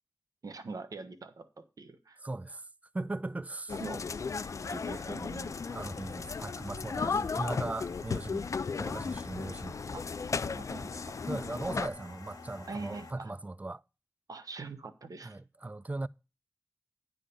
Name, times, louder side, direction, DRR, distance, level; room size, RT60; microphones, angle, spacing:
voice 1, 0.4-2.2 3.7-4.0 4.3-4.4 4.7-5.5 9.9-10.0 10.4-11.2 12.7-13.3 14.3-15.4, right 3 dB, 70° right, 1.0 m, -43 dB
voice 2, 2.2-2.6 2.9-3.7 5.7-8.5 8.8-9.8 11.2-13.8 15.2-16.1, right 2 dB, 25° right, 0.3 m, -38 dB
sound 1, 3.7-11.9, left 5 dB, 55° left, 0.3 m, -35 dB
sound 2, 4.2-13.1, left 3 dB, 90° left, 1.2 m, -49 dB
9.9 x 3.8 x 6.7 m
wide cardioid pair, 90°, 6 cm